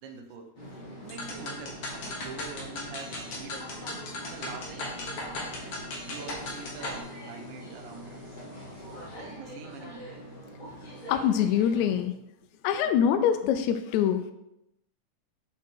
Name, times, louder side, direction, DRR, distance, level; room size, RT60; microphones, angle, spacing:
voice 1, 0.0-0.6 0.9-3.8 4.2-5.0 5.6-8.4 9.2-10.1, right 4 dB, 85° right, 5 dB, 2.3 m, -45 dB
Moscow metro journey, 0.5-12.0, equal, 25° left, 0.9 m, -43 dB
sound 1, 1.1-7.0, left 2 dB, 55° left, 2.3 m, -37 dB
voice 2, 11.1-12.2 12.6-14.3, left 9 dB, 80° left, 8 dB, 1.7 m, -24 dB
7.1 x 5.0 x 4.4 m, 0.84 s
omnidirectional pair, 3.6 m